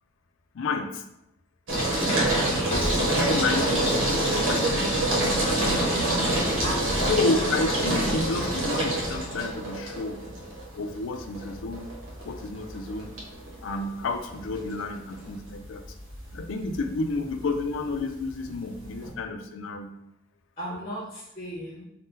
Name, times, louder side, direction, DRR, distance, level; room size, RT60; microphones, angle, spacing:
voice 1, 0.5-1.0 2.7-5.0 7.0-10.2 10.7-11.9 12.2-13.1 13.6-15.8 16.3-19.9 20.7-20.8, left 3 dB, 75° left, 6 dB, 0.4 m, -30 dB
sound 1, 1.7-19.1, right 1 dB, 90° right, 0.9 m, -27 dB
voice 2, 5.5-6.1 6.6-7.4 20.6-21.9, equal, 30° left, -6 dB, 0.7 m, -36 dB
2.7 x 2.1 x 3.6 m, 0.81 s
head